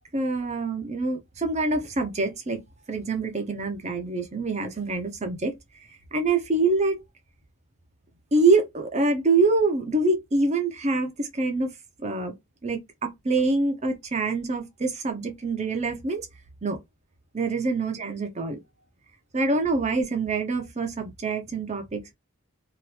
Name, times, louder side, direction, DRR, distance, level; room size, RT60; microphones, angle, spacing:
voice 1, 0.1-2.6 2.9-5.5 6.1-7.0 8.3-11.8 12.0-12.3 12.6-16.3 16.6-16.8 17.3-18.6 19.3-22.1, right 3 dB, 30° right, 0.7 m, -25 dB
2.8 x 2.5 x 3.2 m
head